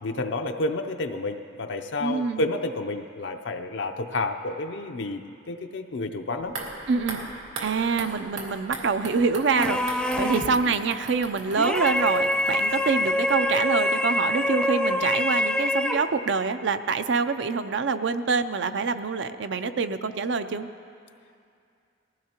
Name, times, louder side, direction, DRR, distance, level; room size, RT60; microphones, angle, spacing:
voice 1, 0.0-5.2 5.5-6.5 10.5-10.8, left 2 dB, 65° left, 5 dB, 0.5 m, -30 dB
voice 2, 2.0-2.4 6.9-7.2 7.6-20.7, right 5 dB, 65° right, 10 dB, 0.5 m, -26 dB
sound 1, 6.4-13.5 13.8-13.9, right 3 dB, 90° right, 2.1 m, -39 dB
sound 2, 9.6-10.6 11.6-16.2, left 1 dB, 5° left, 0.5 m, -25 dB
19.5 x 15.5 x 2.9 m, 2.4 s
head